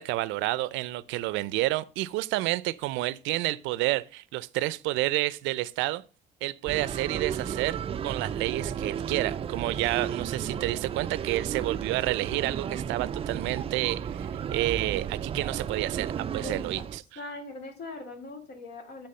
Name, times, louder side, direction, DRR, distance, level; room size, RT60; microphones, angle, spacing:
voice 1, 0.0-6.0 6.4-16.8, right 18 dB, 85° right, 0.5 m, -30 dB
sound 1, 6.7-17.0, right 8 dB, 30° right, 0.4 m, -33 dB
voice 2, 16.4-16.9 17.2-19.1, left 2 dB, 60° left, 2.4 m, -40 dB
9.7 x 3.6 x 5.4 m
cardioid pair, 115°, 19 cm